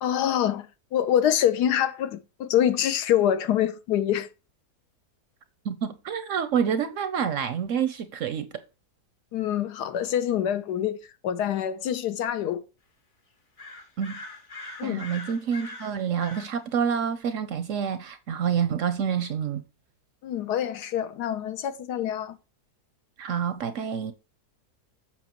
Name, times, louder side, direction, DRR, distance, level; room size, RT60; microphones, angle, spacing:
voice 1, 0.0-4.3 9.3-11.0 11.2-12.6 14.8-15.0 20.2-22.4, left 10 dB, 80° left, 1.3 m, -25 dB
voice 2, 5.7-8.5 14.0-14.2 14.8-19.6 23.2-24.1, right 7 dB, 65° right, 0.8 m, -28 dB
sound 1, 13.6-16.6, left 2 dB, 50° left, 1.5 m, -42 dB
7.4 x 5.7 x 2.9 m
omnidirectional pair, 1.7 m